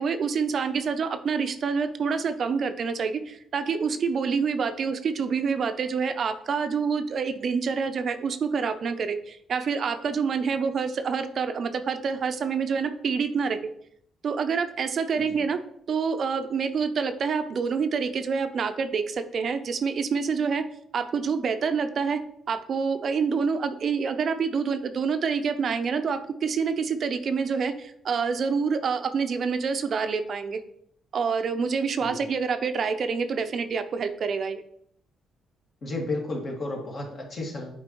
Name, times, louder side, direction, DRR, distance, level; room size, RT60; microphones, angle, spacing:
voice 1, 0.0-13.7 14.2-15.6 15.9-20.6 20.9-22.2 22.5-30.6 31.1-34.6, right 5 dB, 55° right, 9 dB, 0.5 m, -27 dB
voice 2, 35.8-37.7, left 2 dB, 50° left, -1 dB, 1.9 m, -33 dB
7.5 x 4.4 x 3.0 m, 0.70 s
cardioid pair, 90°, 0 cm